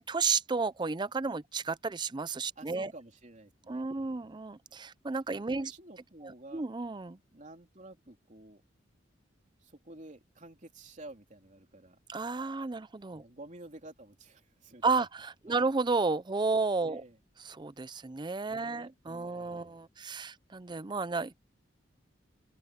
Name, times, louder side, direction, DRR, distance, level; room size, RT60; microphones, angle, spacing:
voice 1, 0.0-2.9 3.7-5.7 6.2-7.2 12.1-13.2 14.8-17.0 17.4-21.4, right 4 dB, 25° right, 0.5 m, -32 dB
voice 2, 2.5-4.4 5.6-6.7 7.3-8.6 9.6-12.0 13.2-15.1 15.5-15.7 16.8-17.2 18.5-19.9, right 2 dB, 40° right, 3.2 m, -51 dB
open air
head